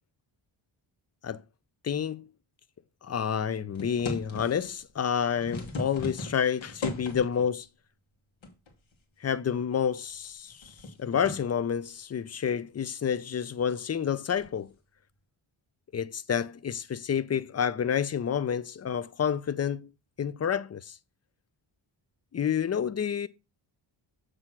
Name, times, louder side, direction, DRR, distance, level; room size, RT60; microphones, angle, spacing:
voice 1, 1.8-2.3 3.0-7.7 9.2-10.7 11.0-14.7 15.9-19.9 20.2-21.0 22.3-23.3, left 8 dB, 35° left, 0.5 m, -29 dB
sound 1, 3.7-4.7 5.2-7.5 8.4-8.9 9.3-9.4 10.0-11.5 14.4-14.6, left 2 dB, 70° left, 1.6 m, -38 dB
7.5 x 3.3 x 5.9 m
wide cardioid pair, 100°, 48 cm